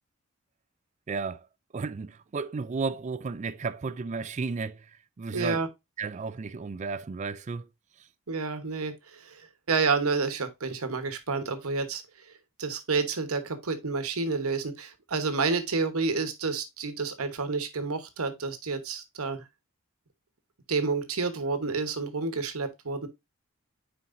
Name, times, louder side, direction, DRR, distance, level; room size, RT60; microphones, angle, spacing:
voice 1, 1.1-1.4 1.7-4.8 5.2-5.6 6.0-7.7, right 4 dB, 35° right, 0.4 m, -33 dB
voice 2, 5.3-5.7 8.3-12.0 12.6-19.4 20.7-23.1, right 4 dB, 90° right, 1.1 m, -29 dB
9.3 x 4.5 x 2.6 m
head